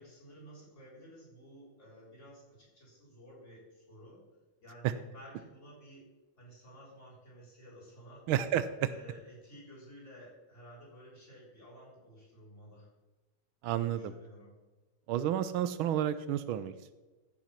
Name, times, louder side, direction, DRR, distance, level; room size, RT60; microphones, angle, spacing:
voice 1, 0.0-4.2 4.6-6.1 6.4-8.3 8.8-12.9 13.8-14.5, equal, 30° left, -4 dB, 4.4 m, -53 dB
voice 2, 8.3-8.9 13.6-14.1 15.1-16.9, right 11 dB, 80° right, 13 dB, 1.4 m, -31 dB
14.5 x 5.9 x 5.7 m, 1.2 s
omnidirectional pair, 2.3 m